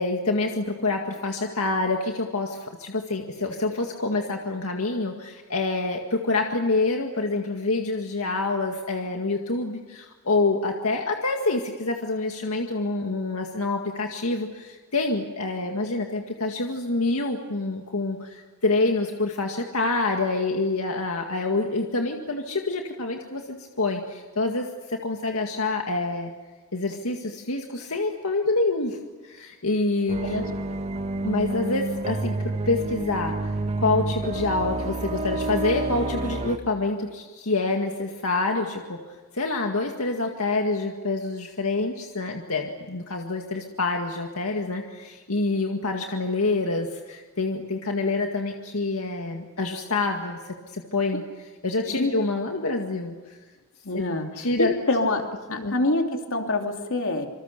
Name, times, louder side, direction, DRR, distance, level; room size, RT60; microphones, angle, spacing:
voice 1, 0.0-26.3 26.7-29.0 29.2-30.4 31.2-32.3 32.7-33.4 33.8-39.0 39.3-51.2 51.6-53.4 53.9-54.0 54.4-54.7 55.6-55.7, left 3 dB, 85° left, 2 dB, 2.0 m, -27 dB
sound 1, 30.1-36.6, right 2 dB, 30° right, 1.3 m, -29 dB
voice 2, 53.8-55.2 55.5-57.3, left 2 dB, 65° left, 3 dB, 3.1 m, -26 dB
27.5 x 25.5 x 6.8 m, 1.3 s
head